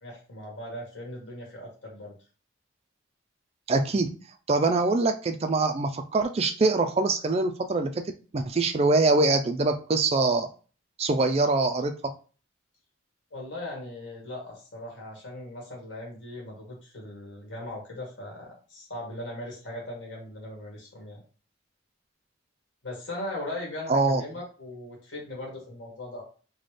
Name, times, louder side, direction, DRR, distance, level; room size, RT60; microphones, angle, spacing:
voice 1, 0.0-2.1 13.3-21.2 22.8-26.2, left 1 dB, 70° left, -2 dB, 1.8 m, -39 dB
voice 2, 3.7-4.1 4.5-7.9 8.3-10.5 11.0-11.9 23.9-24.2, right 3 dB, 30° right, 6 dB, 0.4 m, -23 dB
4.1 x 2.2 x 3.2 m, 0.37 s
head